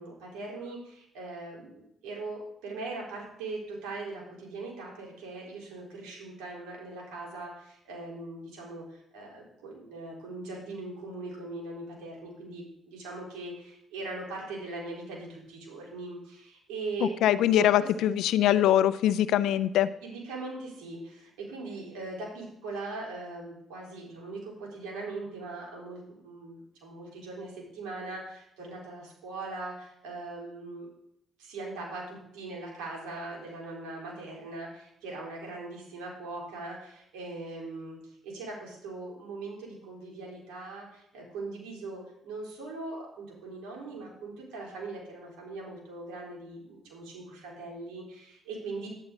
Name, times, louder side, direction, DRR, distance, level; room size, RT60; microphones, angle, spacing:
voice 1, 0.0-17.2 17.5-18.1 20.0-30.9 31.4-48.9, right 3 dB, 90° right, -2 dB, 4.0 m, -40 dB
voice 2, 17.2-19.9, left 11 dB, 80° left, 15 dB, 0.5 m, -23 dB
11.0 x 9.8 x 3.9 m, 0.76 s
supercardioid pair, 70°, 0 cm